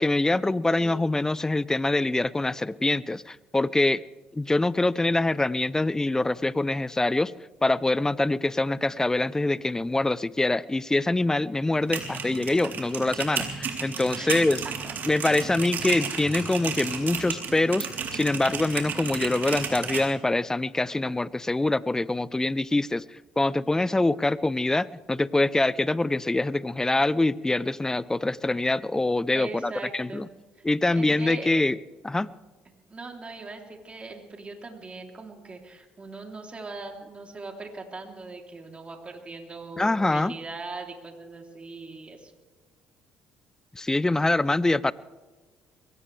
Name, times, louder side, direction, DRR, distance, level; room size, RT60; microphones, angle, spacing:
voice 1, 0.0-4.0 4.3-7.3 7.6-14.6 15.1-30.3 30.6-31.8 32.0-32.3 39.8-40.3 43.7-44.9, left 2 dB, 15° left, 19 dB, 0.6 m, -24 dB
voice 2, 0.8-1.1 14.1-15.0 29.3-30.3 30.9-31.5 32.9-42.3, right 3 dB, 30° right, 3 dB, 3.3 m, -40 dB
sound 1, 11.7-20.0, right 6 dB, 55° right, 3.6 m, -33 dB
22.5 x 18.0 x 3.4 m, 1.3 s
supercardioid pair, 65°, 4 cm